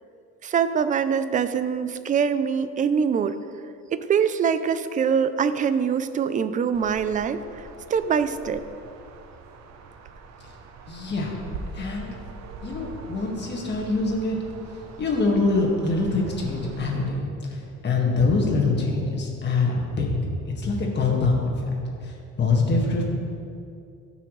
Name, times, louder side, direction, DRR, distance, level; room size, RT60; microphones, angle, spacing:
voice 1, 0.4-3.4 3.9-8.6, right 7 dB, 30° right, 12 dB, 0.3 m, -24 dB
sound 1, 6.7-17.1, right 4 dB, 65° right, 0.8 m, -42 dB
voice 2, 10.9-11.3 11.7-12.1 12.6-14.4 14.7-20.1 20.6-21.6 22.0-23.0, left 3 dB, 35° left, -1 dB, 1.7 m, -24 dB
14.5 x 5.9 x 3.1 m, 2.5 s
cardioid pair, 135°, 29 cm